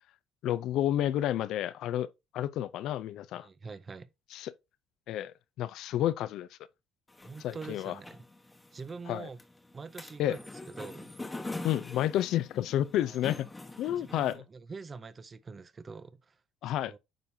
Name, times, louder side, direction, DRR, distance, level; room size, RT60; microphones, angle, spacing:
voice 1, 0.4-3.5 4.3-4.5 5.1-6.5 7.4-7.9 9.1-9.3 10.2-10.4 11.6-13.5 13.8-14.4 16.6-16.9, left 12 dB, 70° left, 0.5 m, -30 dB
voice 2, 3.3-4.1 7.2-8.2 8.7-9.4 9.7-11.1 13.0-13.2 14.0-17.0, right 4 dB, 25° right, 0.6 m, -45 dB
sound 1, 7.1-14.3, left 2 dB, 10° left, 1.1 m, -44 dB
8.9 x 5.4 x 2.7 m
cardioid pair, 130°, 0 cm